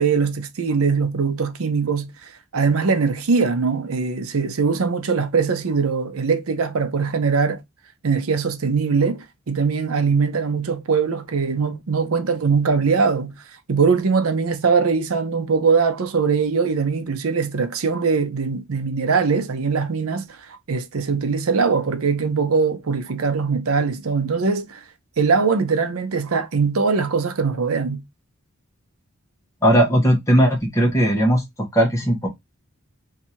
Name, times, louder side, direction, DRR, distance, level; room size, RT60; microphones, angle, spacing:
voice 1, 0.0-7.6 8.0-13.3 13.7-24.8 25.2-28.0, right 5 dB, 75° right, 0.6 m, -21 dB
voice 2, 29.6-31.4 31.7-32.3, equal, 15° left, 0.9 m, -17 dB
2.7 x 2.4 x 4.2 m
head